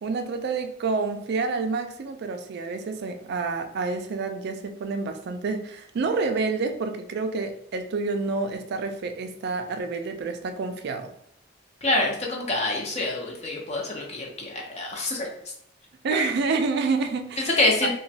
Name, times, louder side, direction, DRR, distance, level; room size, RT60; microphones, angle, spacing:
voice 1, 0.0-11.1 16.0-17.9, right 4 dB, 60° right, 7 dB, 0.3 m, -28 dB
voice 2, 11.8-15.3 17.6-17.9, left 2 dB, 35° left, -1 dB, 0.5 m, -26 dB
2.9 x 2.2 x 2.7 m, 0.69 s
head